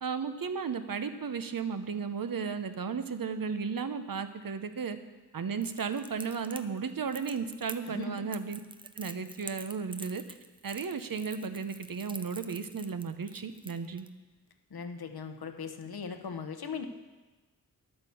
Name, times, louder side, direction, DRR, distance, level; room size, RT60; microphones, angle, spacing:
voice 1, 0.0-5.0 5.3-8.6 9.0-10.2 10.6-14.1, right 5 dB, 60° right, 9 dB, 0.9 m, -34 dB
Crackle, 5.6-14.1, right 2 dB, 15° right, 0.5 m, -46 dB
voice 2, 7.9-8.2 14.7-16.8, left 5 dB, 75° left, 7 dB, 1.0 m, -39 dB
11.0 x 8.9 x 7.0 m, 1.2 s
wide cardioid pair, 105°, 38 cm